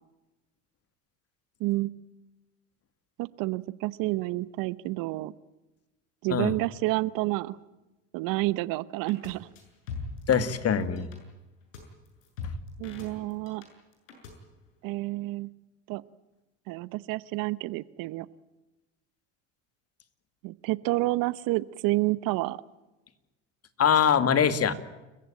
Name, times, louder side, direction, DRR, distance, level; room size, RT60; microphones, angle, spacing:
voice 1, 1.6-1.9 3.2-5.3 6.2-7.6 8.1-9.5 12.8-13.6 14.8-15.5 15.9-16.0 16.7-18.3 20.4-22.6, right 20 dB, 60° right, 19 dB, 1.0 m, -29 dB
sound 1, 9.1-9.3 9.6-10.6 10.8-11.2 11.7-11.8 12.1-13.7 13.9-14.3, left 3 dB, 85° left, 7.4 m, -39 dB
voice 2, 10.3-11.1 23.8-24.7, left 7 dB, 40° left, 12 dB, 2.3 m, -23 dB
29.5 x 15.5 x 8.9 m, 1.1 s
hypercardioid pair, 80°, 37 cm